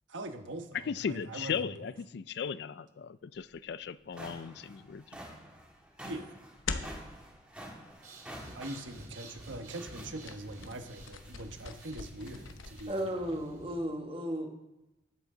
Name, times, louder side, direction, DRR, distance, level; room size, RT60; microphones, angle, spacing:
voice 1, 0.1-1.9 6.0-6.4 8.5-13.1, right 1 dB, 75° right, 6 dB, 1.2 m, -42 dB
voice 2, 0.9-5.2, left 6 dB, 55° left, 16 dB, 0.3 m, -37 dB
sound 1, 3.4-3.5 3.9-13.1, equal, 5° right, 1.8 m, -50 dB
sound 2, 6.6-7.1 10.0-12.8, left 4 dB, 85° left, 0.9 m, -41 dB
Breathing, 7.9-14.0, right 1 dB, 45° right, 2.7 m, -51 dB
voice 3, 12.9-14.5, equal, 30° right, 2 dB, 1.3 m, -34 dB
19.0 x 8.0 x 3.8 m, 0.95 s
head